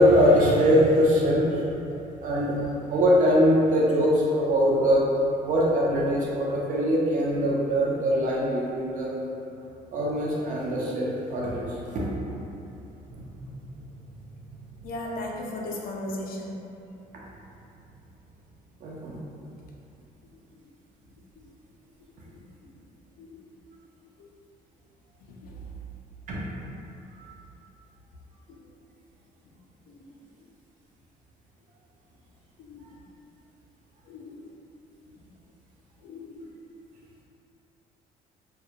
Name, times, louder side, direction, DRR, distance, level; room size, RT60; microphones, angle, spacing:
voice 1, 0.0-1.6 2.2-2.6 2.9-5.0 5.4-9.1 9.9-12.1 12.4-12.5 18.8-19.2 26.3-26.4 27.2-27.3, equal, 50° right, -5 dB, 0.5 m, -22 dB
voice 2, 14.8-16.6 20.6-20.7 21.4-21.5 22.3-22.7 23.1-23.5 24.2-24.3 25.2-25.7 28.5-28.6 29.9-30.2 32.6-32.9 34.0-34.6 36.0-36.5, left 1 dB, 60° left, -2 dB, 0.4 m, -38 dB
2.2 x 2.0 x 2.7 m, 2.7 s
cardioid pair, 110°, 17 cm